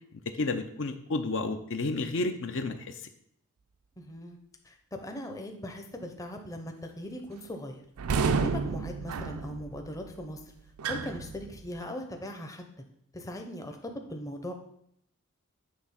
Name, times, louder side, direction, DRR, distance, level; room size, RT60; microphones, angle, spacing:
voice 1, 0.4-3.0, left 2 dB, 55° left, 7 dB, 0.6 m, -31 dB
voice 2, 4.0-4.4 4.6-7.8 8.4-10.4 10.9-12.6 13.1-14.5, equal, 15° left, 4 dB, 0.7 m, -39 dB
sound 1, 8.0-11.8, right 5 dB, 85° right, 0.5 m, -31 dB
8.5 x 3.6 x 5.7 m, 0.72 s
head